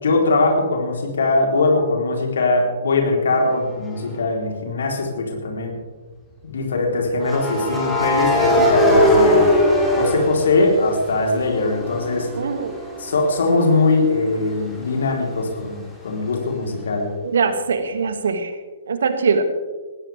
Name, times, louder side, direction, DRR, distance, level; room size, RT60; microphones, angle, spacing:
voice 1, 0.0-5.7 6.4-9.5 10.0-12.3 13.0-17.1, left 3 dB, 60° left, 1 dB, 3.9 m, -21 dB
sound 1, 3.9-4.1 7.2-11.1 11.5-15.1, equal, 5° left, 3.5 m, -20 dB
voice 2, 12.4-12.7 17.2-18.5 18.9-19.4, right 5 dB, 60° right, 9 dB, 1.7 m, -21 dB
20.5 x 16.5 x 3.5 m, 1.3 s
figure-of-eight pair, 120°, 0 cm